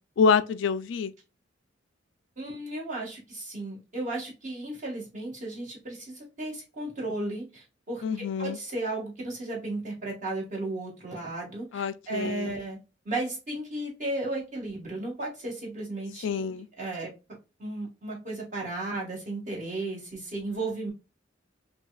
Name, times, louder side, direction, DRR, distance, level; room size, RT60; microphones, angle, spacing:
voice 1, 0.2-1.1 8.0-8.6 11.7-12.6 16.2-16.7, left 5 dB, 70° left, 0.3 m, -26 dB
voice 2, 2.4-12.8 13.0-16.4 16.8-17.1 17.6-20.9, right 2 dB, 40° right, 1.7 m, -34 dB
5.7 x 2.3 x 2.3 m
head